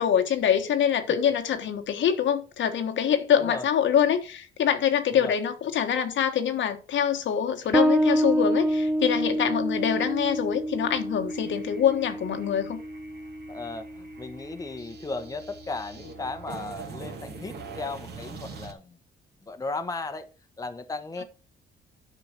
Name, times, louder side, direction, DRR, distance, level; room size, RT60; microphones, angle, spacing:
voice 1, 0.0-12.8, left 8 dB, 70° left, 1.3 m, -25 dB
voice 2, 3.0-3.7 5.1-5.4 13.5-19.0 19.4-20.3 20.6-21.2, left 3 dB, 15° left, 1.0 m, -36 dB
sound 1, 7.6-18.7, right 4 dB, 55° right, 2.2 m, -45 dB
Bass guitar, 7.7-14.9, right 1 dB, 5° right, 0.5 m, -28 dB
9.2 x 5.3 x 5.9 m
cardioid pair, 90°, 20 cm